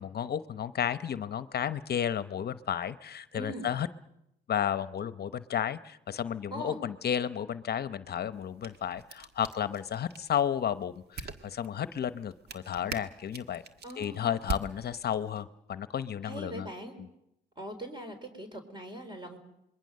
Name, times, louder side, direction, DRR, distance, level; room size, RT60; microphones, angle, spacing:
voice 1, 0.0-3.9 4.5-13.6 14.0-16.7, left 9 dB, 55° left, 13 dB, 0.9 m, -32 dB
voice 2, 3.3-3.7 6.5-6.8 13.8-14.2 16.2-17.0 17.6-19.4, right 1 dB, 25° right, 5 dB, 4.1 m, -41 dB
sound 1, 8.3-15.4, right 4 dB, 55° right, 1.7 m, -44 dB
26.5 x 22.0 x 6.6 m, 0.83 s
cardioid pair, 90°, 20 cm